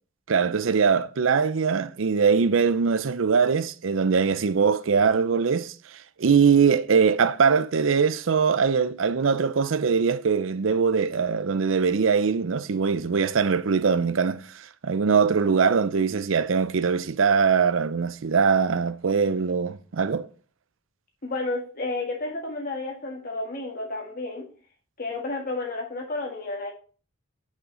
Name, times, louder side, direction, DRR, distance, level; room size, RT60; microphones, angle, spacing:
voice 1, 0.3-5.7 6.2-14.4 14.8-20.3, right 5 dB, 70° right, 0.5 m, -22 dB
voice 2, 21.2-24.4 25.0-26.7, left 2 dB, 45° left, 1.7 m, -31 dB
6.2 x 5.7 x 5.1 m
head